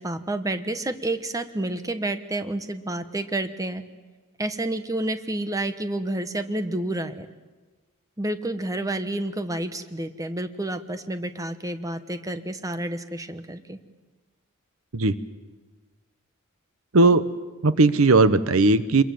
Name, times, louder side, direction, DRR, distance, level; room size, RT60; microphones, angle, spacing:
voice 1, 0.0-3.8 4.4-7.3 8.2-13.8, right 1 dB, 15° right, 9 dB, 1.1 m, -29 dB
voice 2, 17.6-19.0, right 3 dB, 70° right, 14 dB, 0.9 m, -17 dB
27.5 x 22.5 x 7.7 m, 1.3 s
head